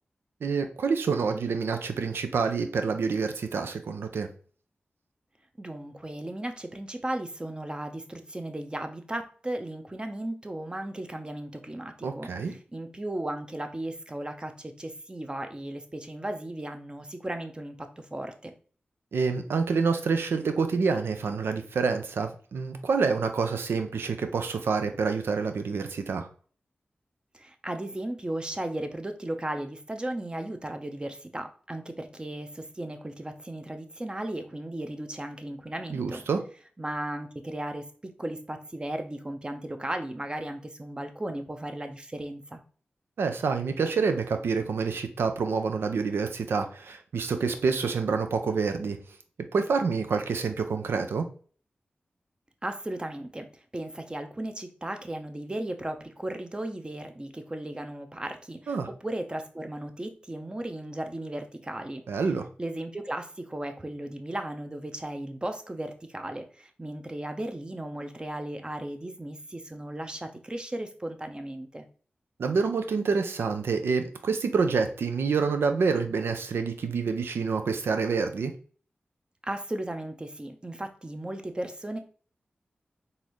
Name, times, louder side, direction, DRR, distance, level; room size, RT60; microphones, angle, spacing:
voice 1, 0.4-4.3 12.0-12.5 19.1-26.3 35.9-36.4 43.2-49.0 49.5-51.3 58.7-58.9 62.1-62.4 72.4-78.5, right 5 dB, 90° right, 7 dB, 0.5 m, -27 dB
voice 2, 5.6-18.5 27.3-36.2 36.8-42.6 52.6-53.5 53.7-62.0 62.6-71.8 79.4-82.0, right 1 dB, 25° right, 6 dB, 0.7 m, -36 dB
3.9 x 2.7 x 3.0 m, 0.42 s
cardioid pair, 45°, 4 cm